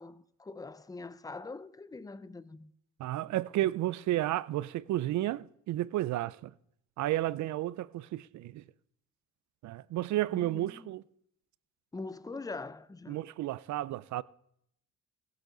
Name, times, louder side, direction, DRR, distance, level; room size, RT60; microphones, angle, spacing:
voice 1, 0.0-2.7 10.3-10.9 11.9-13.2, left 3 dB, 10° left, 0.5 m, -43 dB
voice 2, 3.0-6.5 7.0-8.6 9.6-11.0 13.1-14.2, right 15 dB, 70° right, 0.5 m, -32 dB
17.0 x 8.3 x 3.9 m
cardioid pair, 90°, 30 cm